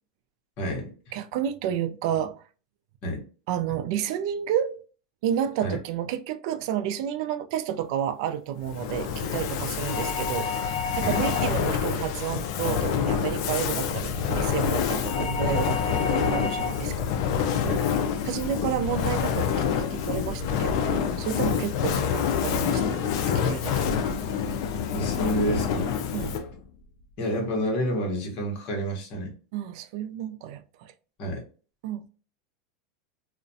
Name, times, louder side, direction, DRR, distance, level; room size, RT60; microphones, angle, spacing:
voice 1, 0.6-0.9 3.0-3.2 5.6-5.8 11.0-11.2 17.6-17.9 24.9-26.0 27.2-29.3 31.2-31.4, equal, 45° left, 1.0 m, -29 dB
voice 2, 1.1-2.4 3.5-4.8 5.2-17.0 17.4-17.6 18.2-19.6 19.9-23.0 23.4-24.2 26.1-26.4 29.5-30.9 31.8-32.1, right 10 dB, 60° right, 0.3 m, -31 dB
Fire, 8.6-26.6, left 7 dB, 60° left, 0.4 m, -27 dB
sound 1, 9.8-11.8 15.0-16.9, left 5 dB, 75° left, 0.8 m, -32 dB
2.4 x 2.1 x 2.6 m
supercardioid pair, 140°, 3 cm